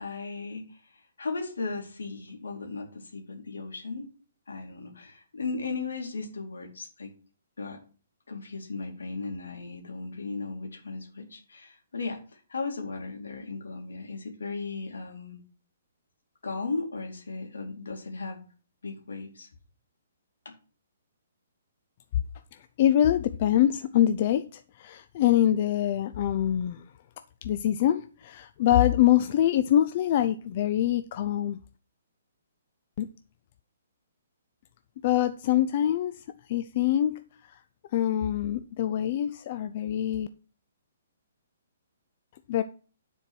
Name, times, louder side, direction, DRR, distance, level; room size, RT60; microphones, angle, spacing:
voice 1, 0.0-4.1 4.5-7.1 7.6-7.8 8.3-15.4 16.4-18.5 18.8-19.5 20.4-20.6, left 3 dB, 80° left, 3 dB, 2.6 m, -36 dB
voice 2, 22.8-26.8 27.4-31.6 33.0-33.1 35.0-36.1 36.5-37.1 37.9-40.3 42.5-42.6, left 11 dB, 45° left, 10 dB, 0.5 m, -24 dB
9.9 x 4.5 x 6.2 m, 0.38 s
hypercardioid pair, 135°, 0 cm